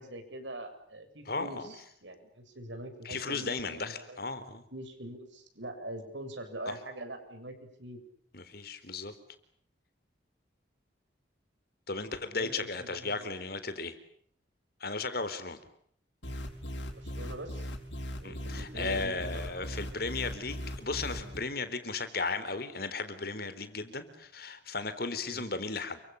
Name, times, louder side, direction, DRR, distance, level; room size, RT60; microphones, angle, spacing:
voice 1, 0.0-4.4 4.7-8.0 12.3-13.3 16.9-17.7 18.1-19.7 25.3-25.5, right 1 dB, 90° right, 7 dB, 7.6 m, -43 dB
voice 2, 1.3-1.7 3.0-4.6 6.7-6.8 8.3-9.1 11.9-14.0 14.8-15.6 18.2-26.0, left 3 dB, 55° left, 11 dB, 4.0 m, -35 dB
sound 1, 16.2-21.4, equal, 80° left, 6.6 m, -39 dB
30.0 x 25.5 x 7.2 m, 0.62 s
head